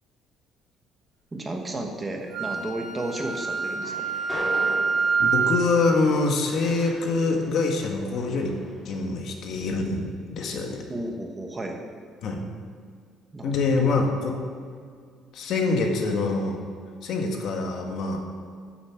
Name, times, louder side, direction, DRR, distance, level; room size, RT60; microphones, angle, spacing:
voice 1, 1.3-4.1 10.9-11.8 13.3-13.9, right 1 dB, 15° right, 2 dB, 1.1 m, -33 dB
Wind instrument woodwind instrument, 2.3-5.7, right 5 dB, 80° right, 3.2 m, -26 dB
Train, 3.7-8.9, left 1 dB, 10° left, 3.1 m, -40 dB
voice 2, 5.2-8.5 8.8-10.8 12.2-12.4 13.4-14.4 15.3-16.6 17.0-18.2, left 3 dB, 55° left, 2 dB, 1.5 m, -25 dB
9.6 x 7.3 x 7.1 m, 2.1 s
cardioid pair, 160°, 0 cm